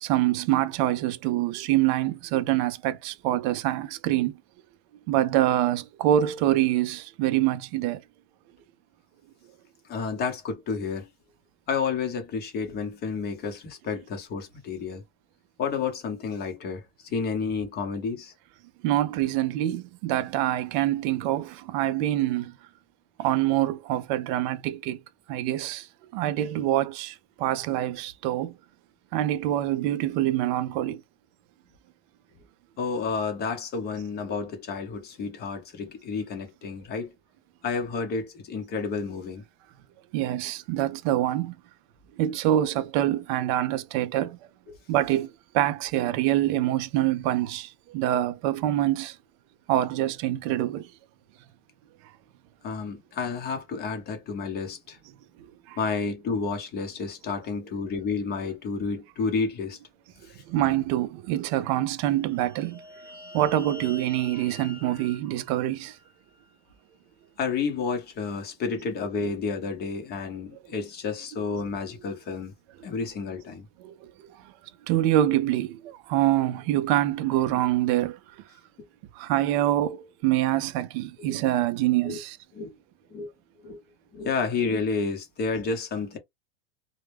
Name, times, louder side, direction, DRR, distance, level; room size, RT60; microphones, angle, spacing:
voice 1, 0.0-4.3 5.1-8.0 18.8-22.5 23.2-25.0 25.3-25.9 26.1-28.5 29.1-31.0 40.1-41.5 42.2-44.4 44.9-45.3 45.5-49.2 49.7-50.9 55.4-55.8 60.5-62.8 63.3-66.0 73.8-74.1 74.9-78.2 79.2-82.4, right 13 dB, 45° right, 0.4 m, -25 dB
voice 2, 9.9-11.1 11.7-15.0 15.6-16.8 17.1-18.3 32.8-37.1 37.6-39.4 44.7-44.8 52.6-55.0 55.8-59.8 60.3-60.4 67.4-72.5 72.8-73.7 81.2-81.4 82.0-82.2 82.5-82.7 83.1-83.3 83.6-83.8 84.1-86.2, left 5 dB, 30° left, 0.8 m, -30 dB
sound 1, 62.2-66.7, left 2 dB, 10° right, 1.2 m, -47 dB
2.1 x 2.1 x 3.2 m
supercardioid pair, 135°, 35 cm